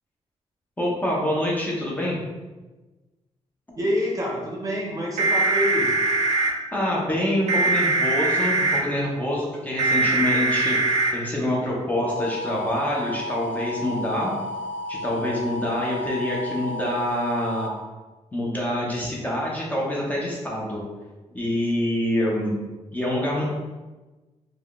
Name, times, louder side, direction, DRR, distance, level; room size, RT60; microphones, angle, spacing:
voice 1, 0.8-2.2 6.7-14.3 14.9-17.7 18.3-20.8 21.3-22.5 22.9-23.5, left 1 dB, 15° left, -4 dB, 0.5 m, -26 dB
voice 2, 3.8-5.9, equal, 30° right, -3 dB, 0.6 m, -26 dB
sound 1, 5.2-6.5 7.5-8.8 9.8-11.1 12.1-17.7, right 2 dB, 75° right, 0.4 m, -25 dB
3.3 x 2.2 x 2.3 m, 1.2 s
cardioid pair, 120°, 12 cm